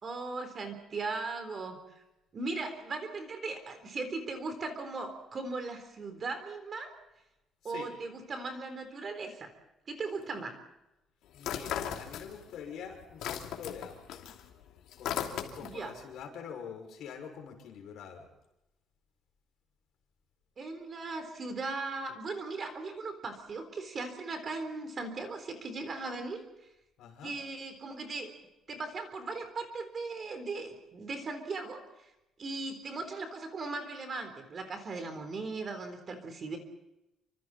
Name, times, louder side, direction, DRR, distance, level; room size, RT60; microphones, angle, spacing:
voice 1, 0.0-1.8 2.3-6.9 7.6-9.5 9.9-10.6 15.6-15.9 20.6-26.4 27.2-28.3 28.7-32.1 32.4-36.6, right 3 dB, 30° right, 7 dB, 3.8 m, -38 dB
voice 2, 11.3-14.3 15.0-18.3 27.0-27.4, left 7 dB, 65° left, 3 dB, 6.3 m, -45 dB
sound 1, 11.4-12.6 12.9-15.9, left 9 dB, 85° left, 2.9 m, -37 dB
29.0 x 26.0 x 4.4 m, 0.92 s
cardioid pair, 175°, 0 cm